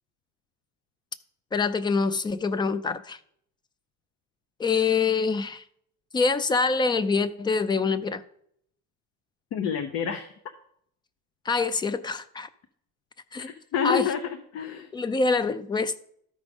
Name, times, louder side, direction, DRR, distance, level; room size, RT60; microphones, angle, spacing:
voice 1, 1.5-3.2 4.6-5.6 6.1-8.2 11.5-12.5 13.3-13.5 13.8-14.1 14.9-16.0, left 4 dB, 15° left, 0.4 m, -25 dB
voice 2, 9.5-10.3 13.4-14.9, left 8 dB, 50° left, 0.8 m, -28 dB
13.0 x 4.9 x 5.3 m
cardioid pair, 160°, 29 cm